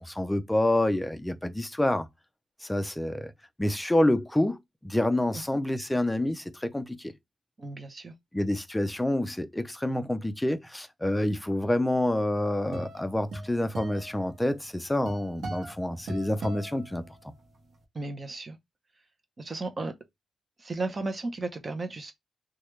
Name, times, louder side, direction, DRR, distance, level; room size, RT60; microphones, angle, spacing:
voice 1, 0.0-2.1 2.6-3.3 3.6-7.1 8.3-17.0, left 1 dB, 10° left, 0.4 m, -27 dB
voice 2, 7.6-8.1 17.9-18.6 19.4-19.9 20.6-22.1, right 3 dB, 30° right, 0.7 m, -34 dB
sound 1, 12.1-17.6, right 1 dB, 80° right, 0.9 m, -40 dB
3.3 x 2.3 x 3.1 m
wide cardioid pair, 130°, 0 cm